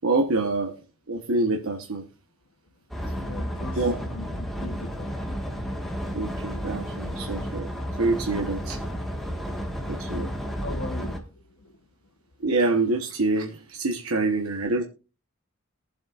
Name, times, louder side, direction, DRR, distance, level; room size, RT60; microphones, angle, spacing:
voice 1, 0.0-0.7 1.1-2.0 3.7-3.9 6.1-7.7 8.0-8.8 9.9-10.3 12.4-14.8, right 2 dB, 80° right, 2 dB, 1.2 m, -26 dB
sound 1, 2.9-11.2, equal, ahead, 1.6 m, -32 dB
voice 2, 3.1-5.2 9.6-10.0 10.6-11.8, left 3 dB, 65° left, 4 dB, 1.1 m, -40 dB
21.5 x 7.6 x 2.5 m, 0.33 s
head